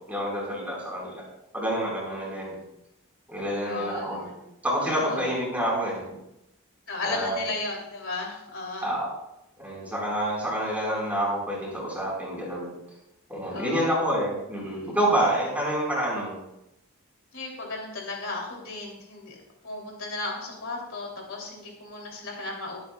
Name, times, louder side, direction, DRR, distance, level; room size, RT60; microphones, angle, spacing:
voice 1, 0.1-1.2 1.5-2.6 3.3-4.2 4.6-6.0 7.0-7.4 8.8-9.1 9.6-12.7 13.3-16.4, right 1 dB, 5° right, -4 dB, 4.8 m, -28 dB
voice 2, 3.6-4.3 4.8-5.3 6.9-8.9 13.5-14.0 17.3-19.4 19.6-22.8, left 3 dB, 65° left, -1 dB, 3.2 m, -35 dB
23.5 x 8.6 x 2.4 m, 0.87 s
head